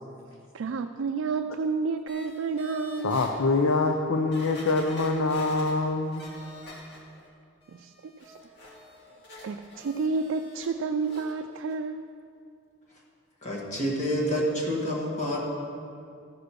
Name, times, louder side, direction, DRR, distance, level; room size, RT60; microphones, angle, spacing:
voice 1, 0.5-3.2 7.7-8.3 9.4-12.1, right 4 dB, 75° right, 7 dB, 0.4 m, -30 dB
sound 1, 2.1-3.3 3.9-4.0 4.3-7.3 7.6-10.7 11.0-11.3 11.7-11.8, left 2 dB, 60° left, 1.9 m, -46 dB
voice 2, 3.0-6.3, left 3 dB, 85° left, 4 dB, 0.6 m, -25 dB
voice 3, 13.4-15.4, equal, 40° left, -4 dB, 1.6 m, -28 dB
14.5 x 5.0 x 6.2 m, 2.4 s
head